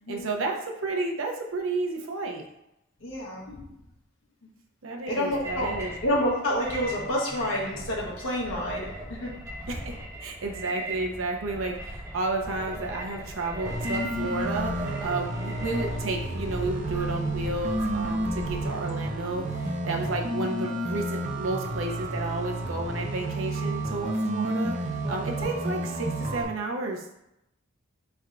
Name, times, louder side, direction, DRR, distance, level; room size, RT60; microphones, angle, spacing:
voice 1, 0.1-2.5 4.8-5.9 9.7-27.2, right 2 dB, 85° right, 1 dB, 0.7 m, -32 dB
voice 2, 3.0-3.7 5.1-9.3 19.3-19.4, equal, 85° left, -3 dB, 1.1 m, -29 dB
sound 1, 5.3-18.7, right 1 dB, 15° right, 1.0 m, -38 dB
sound 2, 13.6-26.4, right 1 dB, 35° right, 0.5 m, -31 dB
3.4 x 2.5 x 4.4 m, 0.85 s
head